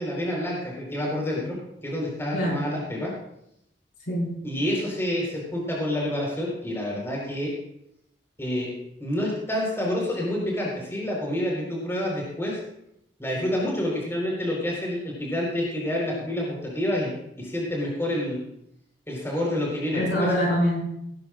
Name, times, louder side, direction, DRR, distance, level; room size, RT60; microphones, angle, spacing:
voice 1, 0.0-1.6 1.8-3.1 4.4-7.5 8.4-8.7 9.0-12.6 13.2-17.1 17.4-18.4 19.1-20.3, left 1 dB, 15° left, -3 dB, 4.5 m, -28 dB
voice 2, 4.1-4.4 19.9-21.0, equal, 75° left, -4 dB, 5.4 m, -25 dB
17.5 x 14.5 x 2.6 m, 0.77 s
head